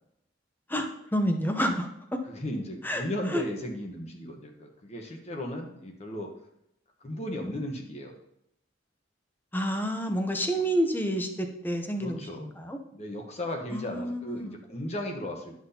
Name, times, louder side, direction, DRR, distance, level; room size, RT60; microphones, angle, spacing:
voice 1, 0.7-1.9 2.8-3.0 3.3-3.4 9.5-12.8 13.7-14.5, equal, 10° left, 5 dB, 0.7 m, -29 dB
voice 2, 2.2-6.3 7.0-8.1 12.0-12.5 12.9-15.6, left 1 dB, 35° left, 2 dB, 1.1 m, -35 dB
11.5 x 6.0 x 2.8 m, 0.79 s
head